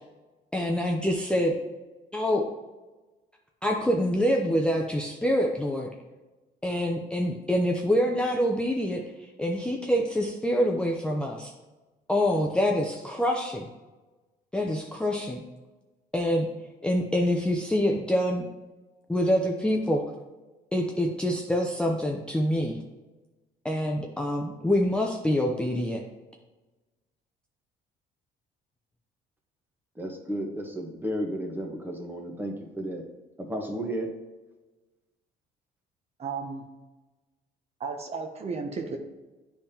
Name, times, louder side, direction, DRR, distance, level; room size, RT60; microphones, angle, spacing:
voice 1, 0.5-1.6 2.1-2.5 3.6-5.9 6.6-9.0 9.4-11.5 12.1-13.7 14.5-15.4 16.1-16.5 16.8-18.4 19.1-20.1 20.7-22.8 23.6-26.0, equal, 5° left, 0 dB, 0.5 m, -26 dB
voice 2, 30.0-33.0 33.4-34.1, equal, 10° right, 2 dB, 1.1 m, -33 dB
voice 3, 36.2-36.6 37.8-39.0, right 4 dB, 40° right, 3 dB, 0.7 m, -33 dB
9.7 x 3.5 x 2.8 m, 1.2 s
cardioid pair, 110°, 17 cm